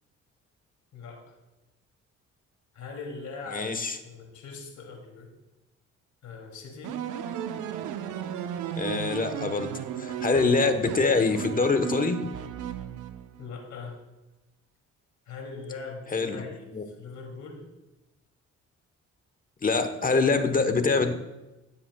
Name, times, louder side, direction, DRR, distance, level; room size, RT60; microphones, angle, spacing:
voice 1, 0.9-1.4 2.7-5.3 6.2-7.0 13.4-14.0 15.3-17.7, left 4 dB, 70° left, 1 dB, 2.7 m, -41 dB
voice 2, 3.5-4.0 8.8-9.7 10.0-12.2 16.1-16.4 16.7-16.8 19.6-21.1, left 4 dB, 30° left, 8 dB, 1.0 m, -24 dB
sound 1, 6.8-13.5, right 9 dB, 85° right, 0.7 m, -35 dB
16.0 x 7.4 x 2.3 m, 1.0 s
cardioid pair, 90°, 30 cm